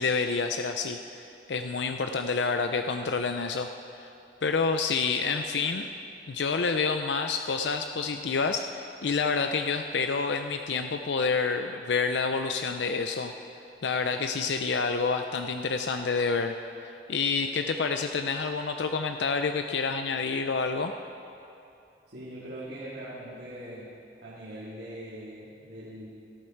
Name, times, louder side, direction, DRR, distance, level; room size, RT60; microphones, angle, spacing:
voice 1, 0.0-3.7 4.0-4.1 4.4-5.9 6.3-13.3 13.8-16.6 16.8-20.9, left 4 dB, 80° left, 6 dB, 0.5 m, -28 dB
voice 2, 22.1-23.9 24.2-26.1, right 1 dB, 65° right, -8 dB, 2.5 m, -41 dB
18.0 x 13.5 x 4.6 m, 2.7 s
head